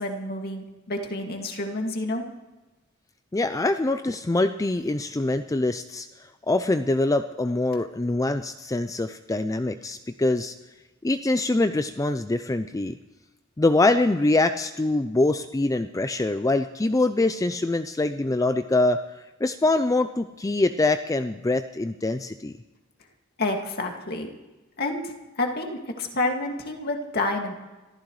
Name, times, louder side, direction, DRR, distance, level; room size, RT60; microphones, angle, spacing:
voice 1, 0.0-2.2 23.4-24.3 24.8-25.1 25.4-27.5, left 2 dB, 50° left, 2 dB, 2.2 m, -29 dB
voice 2, 3.3-10.6 11.0-13.0 13.6-19.0 19.4-22.5, left 2 dB, 15° left, 9 dB, 0.4 m, -24 dB
26.5 x 14.5 x 3.2 m, 1.1 s
head